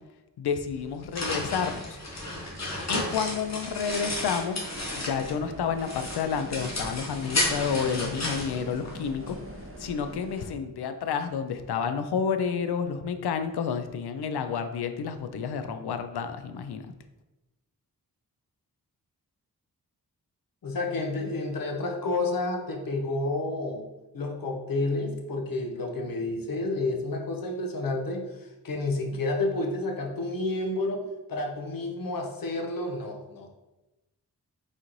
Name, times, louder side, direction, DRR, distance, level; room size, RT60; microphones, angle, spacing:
voice 1, 0.4-2.0 2.6-4.7 5.0-9.4 9.8-16.9, left 6 dB, 85° left, 9 dB, 0.5 m, -30 dB
sound 1, 0.7-5.4 5.8-9.3, left 2 dB, 45° left, 1.1 m, -33 dB
sound 2, 4.7-10.5, right 1 dB, 35° right, 0.8 m, -43 dB
voice 2, 20.6-23.9 24.1-33.5, left 2 dB, 60° left, 3 dB, 0.8 m, -30 dB
4.1 x 3.8 x 3.0 m, 1.0 s
cardioid pair, 65°, 38 cm